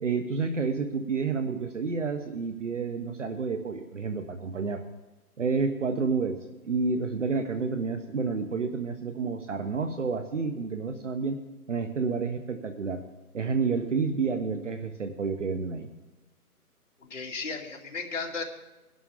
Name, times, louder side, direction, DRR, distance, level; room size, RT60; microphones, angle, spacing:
voice 1, 0.0-4.8 5.4-6.4 6.6-11.4 11.7-13.0 13.3-15.9, right 4 dB, 50° right, 8 dB, 1.0 m, -29 dB
voice 2, 17.0-18.4, left 4 dB, 50° left, 0 dB, 2.5 m, -35 dB
20.5 x 11.5 x 3.7 m, 1.1 s
hypercardioid pair, 170°, 46 cm